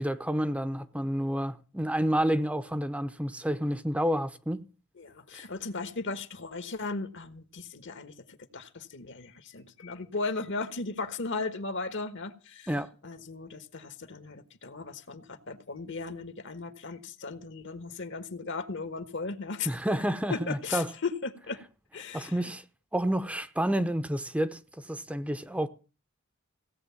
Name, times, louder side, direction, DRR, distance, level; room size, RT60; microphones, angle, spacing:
voice 1, 0.0-4.6 12.7-12.9 19.7-20.9 22.1-22.6 22.9-25.7, equal, 5° right, 0.7 m, -29 dB
voice 2, 5.0-12.7 13.0-19.7 20.3-21.6 21.9-22.5, left 4 dB, 65° left, 1.4 m, -36 dB
17.0 x 8.3 x 7.0 m
head